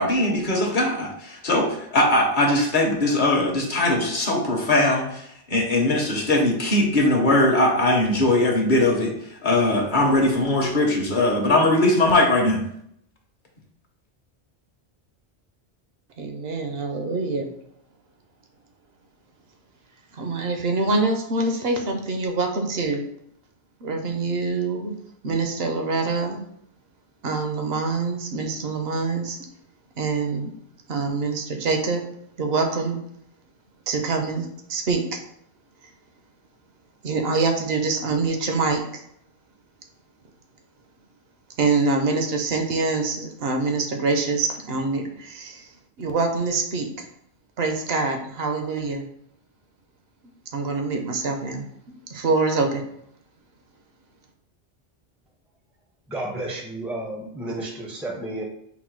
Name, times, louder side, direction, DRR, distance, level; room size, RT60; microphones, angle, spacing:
voice 1, 0.0-9.1 9.4-12.6, left 1 dB, 50° left, 1 dB, 0.8 m, -20 dB
voice 2, 16.2-17.5 20.1-23.0 23.8-24.9 25.2-26.4 27.2-29.4 30.0-30.5 30.9-32.0 32.4-33.0 33.9-35.2 37.0-39.0 41.6-45.7 46.0-47.1 47.6-49.1 50.5-51.7 52.1-52.8, right 3 dB, 70° right, 4 dB, 0.8 m, -25 dB
voice 3, 56.1-58.4, right 1 dB, ahead, 0 dB, 0.4 m, -32 dB
3.9 x 2.2 x 4.5 m, 0.72 s
omnidirectional pair, 1.1 m